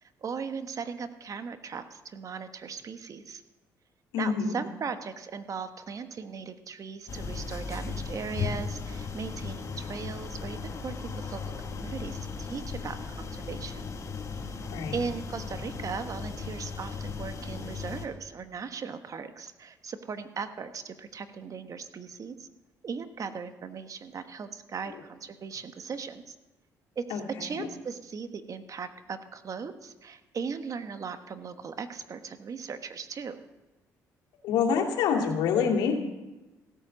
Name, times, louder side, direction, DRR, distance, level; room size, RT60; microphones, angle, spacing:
voice 1, 0.2-3.4 4.2-13.9 14.9-22.5 22.8-26.3 26.9-33.4, right 5 dB, 50° right, 9 dB, 1.3 m, -38 dB
voice 2, 4.1-4.6 14.6-14.9 27.1-27.7 34.4-35.9, left 6 dB, 80° left, 0 dB, 2.4 m, -26 dB
sound 1, 7.1-18.1, left 5 dB, 45° left, 2.0 m, -36 dB
16.5 x 9.0 x 6.3 m, 1.1 s
supercardioid pair, 65°, 7 cm